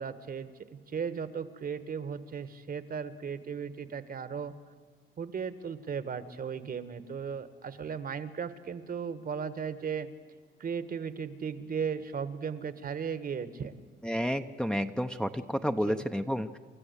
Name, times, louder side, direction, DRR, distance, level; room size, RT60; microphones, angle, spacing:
voice 1, 0.0-4.5 5.2-10.1 10.6-13.7 15.9-16.0, right 6 dB, 45° right, 13 dB, 1.3 m, -36 dB
voice 2, 14.0-16.6, equal, 5° left, 6 dB, 0.8 m, -30 dB
28.5 x 13.5 x 8.2 m, 1.5 s
cardioid pair, 90°, 20 cm